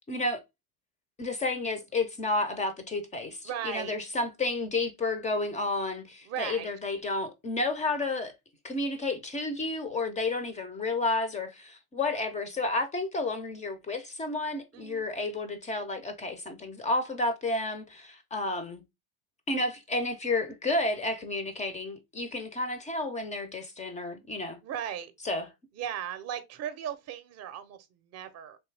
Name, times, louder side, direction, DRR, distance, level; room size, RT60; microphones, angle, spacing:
voice 1, 0.1-0.4 1.2-8.3 8.6-18.8 19.5-24.6 25.2-25.5, left 2 dB, 20° left, 0.3 m, -31 dB
voice 2, 3.4-4.0 6.2-6.7 14.7-15.0 24.6-25.1 25.7-28.6, right 9 dB, 35° right, 0.6 m, -37 dB
3.3 x 2.6 x 3.1 m
supercardioid pair, 115°, 44 cm